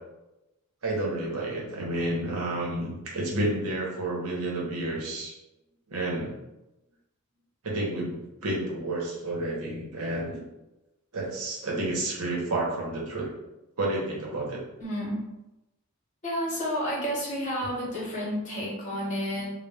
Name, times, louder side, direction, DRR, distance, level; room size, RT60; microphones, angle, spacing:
voice 1, 0.8-5.3 5.9-6.3 7.6-10.4 11.1-13.3 13.8-14.6, right 1 dB, 75° right, -3 dB, 0.8 m, -30 dB
voice 2, 14.8-15.2 16.2-19.5, equal, 35° left, -6 dB, 0.9 m, -30 dB
2.2 x 2.1 x 3.2 m, 0.97 s
head